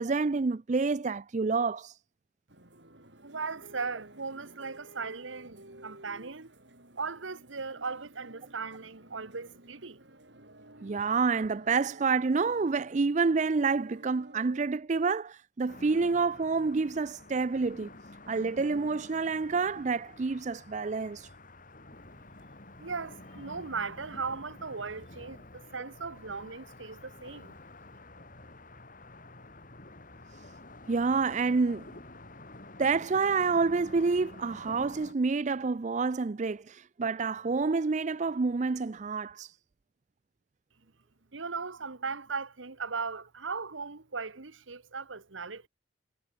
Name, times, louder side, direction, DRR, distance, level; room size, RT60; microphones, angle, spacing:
voice 1, 0.0-1.9 10.8-17.9 18.3-21.3 30.9-31.8 32.8-39.5, right 4 dB, 40° right, 0.4 m, -28 dB
sound 1, 2.5-14.7, right 1 dB, 65° right, 6.9 m, -54 dB
voice 2, 3.2-6.5 7.0-10.0 22.8-27.5 41.3-45.7, right 4 dB, 85° right, 1.5 m, -38 dB
sound 2, 15.7-35.1, left 2 dB, 45° left, 3.6 m, -49 dB
head